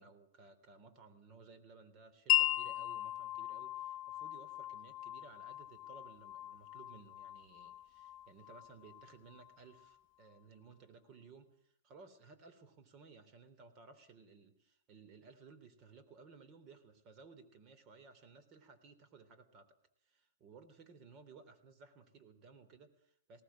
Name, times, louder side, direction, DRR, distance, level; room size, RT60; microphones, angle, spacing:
voice 1, 0.0-19.7 20.0-23.4, right 4 dB, 35° right, 11 dB, 3.3 m, -59 dB
Wind chime, 2.3-9.9, left 14 dB, 35° left, 0.8 m, -38 dB
19.5 x 18.5 x 7.4 m, 0.67 s
hypercardioid pair, 120°, 0 cm